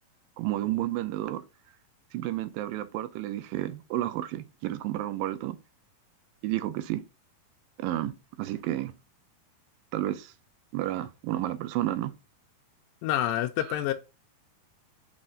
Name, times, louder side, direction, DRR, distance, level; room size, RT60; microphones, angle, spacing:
voice 1, 0.4-1.4 2.1-5.6 6.4-7.0 7.8-8.1 8.4-8.9 9.9-10.3 10.7-12.1, right 14 dB, 85° right, 2.3 m, -31 dB
voice 2, 13.0-13.9, left 13 dB, 85° left, 2.3 m, -27 dB
6.2 x 4.3 x 3.8 m
omnidirectional pair, 4.1 m